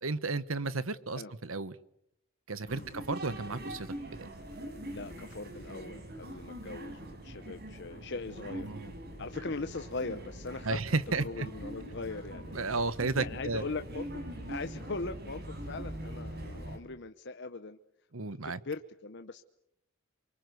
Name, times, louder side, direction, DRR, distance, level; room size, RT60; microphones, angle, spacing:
voice 1, 0.0-1.7 2.5-3.9 4.2-4.3 8.6-8.9 10.6-11.5 12.5-13.6 18.1-18.6, right 3 dB, 85° right, 16 dB, 1.3 m, -33 dB
sound 1, 2.7-16.8, right 1 dB, 50° right, 4.8 m, -43 dB
voice 2, 4.8-8.7 9.2-10.8 11.1-12.6 13.1-17.8 18.4-19.4, left 3 dB, 55° left, 8 dB, 1.0 m, -40 dB
28.5 x 24.0 x 8.0 m, 0.76 s
head